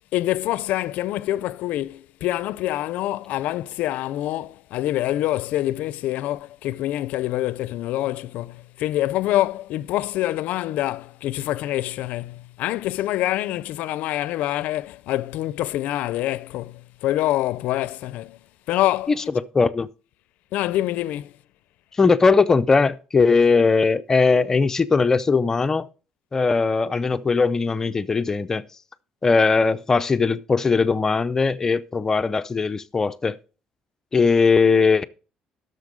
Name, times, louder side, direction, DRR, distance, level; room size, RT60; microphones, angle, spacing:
voice 1, 0.1-18.4 18.7-19.1 20.5-21.3, left 14 dB, 75° left, 0.4 m, -26 dB
voice 2, 19.5-19.9 22.0-25.9 26.3-28.7 29.2-33.4 34.1-35.0, left 4 dB, 20° left, 0.5 m, -19 dB
12.0 x 6.7 x 5.0 m
cardioid pair, 155°, 3 cm